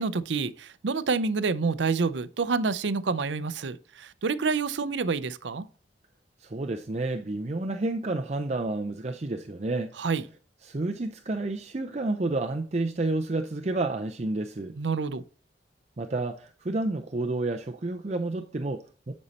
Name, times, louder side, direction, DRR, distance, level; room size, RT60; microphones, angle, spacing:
voice 1, 0.0-5.6 10.0-10.2 14.8-15.2, right 4 dB, 85° right, 0.6 m, -28 dB
voice 2, 6.4-9.9 10.6-14.8 16.0-19.1, right 2 dB, 40° right, 0.5 m, -30 dB
9.8 x 5.5 x 4.1 m
head